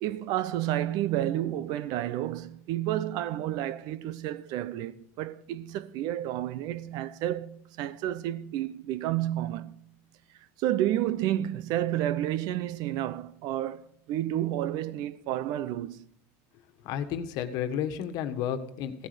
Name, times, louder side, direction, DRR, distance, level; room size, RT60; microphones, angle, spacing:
voice 1, 0.0-9.8 10.6-13.8 14.1-16.0, right 13 dB, 55° right, 0.7 m, -30 dB
voice 2, 16.8-19.1, left 9 dB, 55° left, 1.5 m, -32 dB
16.0 x 10.5 x 5.1 m
supercardioid pair, 130°, 8 cm